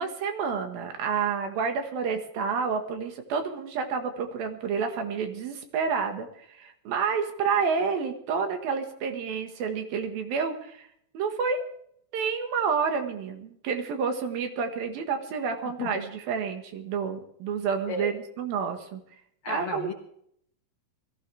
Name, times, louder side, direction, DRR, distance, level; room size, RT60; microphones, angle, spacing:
voice 1, 0.0-10.9 11.1-11.7 12.1-19.0 19.5-19.9, right 6 dB, 85° right, 6 dB, 3.5 m, -29 dB
voice 2, 19.4-19.9, left 3 dB, 50° left, 1 dB, 1.8 m, -33 dB
21.5 x 15.0 x 3.5 m, 0.69 s
omnidirectional pair, 4.1 m